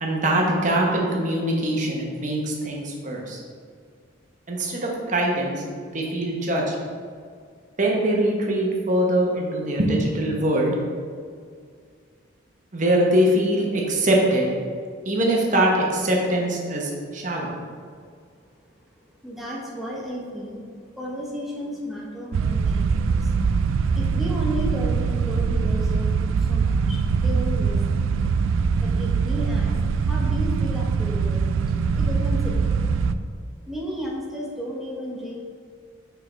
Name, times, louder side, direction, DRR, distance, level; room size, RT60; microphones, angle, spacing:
voice 1, 0.0-3.4 4.5-5.6 5.9-6.8 7.8-10.7 12.7-14.5 15.0-17.6, right 1 dB, 40° right, -1 dB, 1.0 m, -22 dB
voice 2, 19.0-20.6 20.9-23.3 23.9-28.0 28.8-31.6 31.9-32.8 33.7-35.3, equal, ahead, -4 dB, 0.9 m, -33 dB
sound 1, 22.3-33.1, right 5 dB, 85° right, 0.3 m, -22 dB
6.1 x 4.6 x 3.4 m, 2.1 s
head